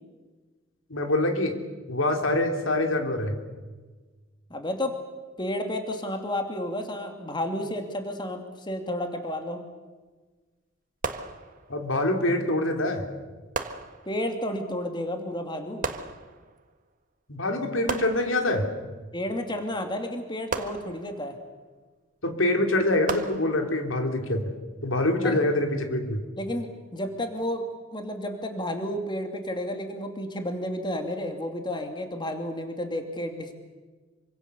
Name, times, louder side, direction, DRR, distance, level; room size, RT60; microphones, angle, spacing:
voice 1, 0.9-1.5 1.9-3.4 11.7-13.1 17.3-18.7 22.2-24.5 24.8-26.2, left 1 dB, 75° left, 4 dB, 3.5 m, -25 dB
voice 2, 4.5-5.0 5.4-9.6 14.1-15.9 19.1-21.4 25.2-25.4 26.4-33.5, left 1 dB, 25° left, 5 dB, 2.6 m, -31 dB
sound 1, 11.0-12.0 13.5-14.4 15.8-16.7 17.9-18.8 20.5-21.4 23.1-24.0, right 4 dB, 45° right, 1.7 m, -35 dB
27.0 x 25.0 x 7.0 m, 1.3 s
head